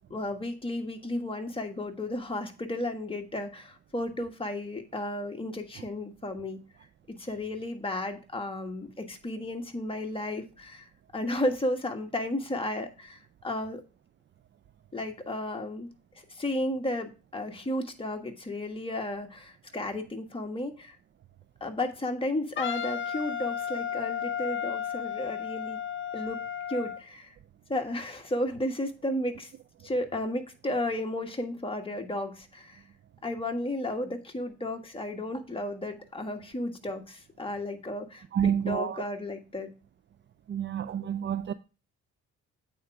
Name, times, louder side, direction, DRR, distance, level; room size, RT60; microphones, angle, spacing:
voice 1, 0.1-6.6 7.2-13.8 14.9-15.9 16.3-21.0 21.6-25.8 26.1-26.4 26.7-27.3 27.7-29.5 29.8-32.8 33.2-39.7, left 1 dB, 20° left, 1.5 m, -33 dB
Wind instrument woodwind instrument, 22.6-27.0, left 8 dB, 40° left, 0.6 m, -33 dB
voice 2, 38.3-39.0 40.5-41.5, right 9 dB, 40° right, 0.4 m, -29 dB
8.5 x 4.4 x 4.8 m
cardioid pair, 90°, 30 cm